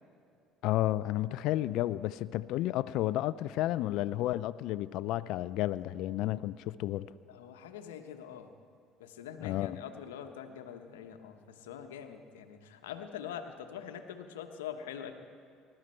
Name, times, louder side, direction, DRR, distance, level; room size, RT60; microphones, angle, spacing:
voice 1, 0.6-7.1 9.4-9.8, left 15 dB, 65° left, 0.3 m, -32 dB
voice 2, 7.3-8.5 9.0-15.1, left 8 dB, 85° left, 1.0 m, -44 dB
20.5 x 12.5 x 4.4 m
hypercardioid pair, 70°, 0 cm